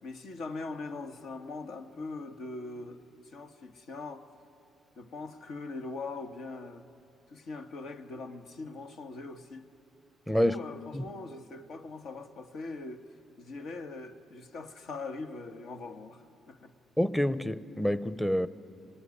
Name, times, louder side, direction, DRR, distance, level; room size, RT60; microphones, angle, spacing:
voice 1, 0.0-4.3 4.9-6.9 7.3-9.7 10.4-13.1 13.4-16.7, left 3 dB, 75° left, 1.5 m, -41 dB
voice 2, 10.3-10.6 10.9-11.0 17.0-18.5, equal, 5° left, 0.7 m, -27 dB
26.5 x 19.0 x 9.7 m
cardioid pair, 90°, 0 cm